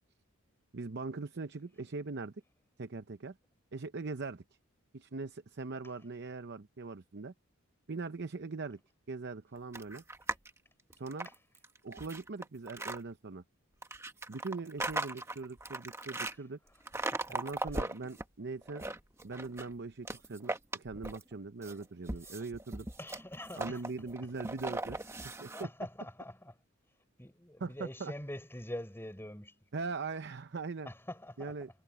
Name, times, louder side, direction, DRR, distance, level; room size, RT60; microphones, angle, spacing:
voice 1, 0.7-2.4 2.8-3.4 3.7-4.4 4.9-7.3 7.9-8.8 9.1-10.0 10.9-11.3 11.8-13.4 14.3-16.6 17.3-18.8 19.2-22.9 23.6-25.0 25.4-25.5 27.6-28.1 29.7-30.9 31.4-31.7, right 3 dB, 55° right, 0.7 m, -41 dB
sound 1, 9.7-10.5 10.9-13.0 13.8-16.3 16.9-18.2 18.6-19.7 20.0-21.3 21.6-25.6, right 2 dB, 15° right, 1.0 m, -38 dB
voice 2, 16.3-17.8 22.0-22.4 23.0-24.3 25.5-26.6 26.9-29.7 30.8-31.7, left 1 dB, 10° left, 5.7 m, -46 dB
head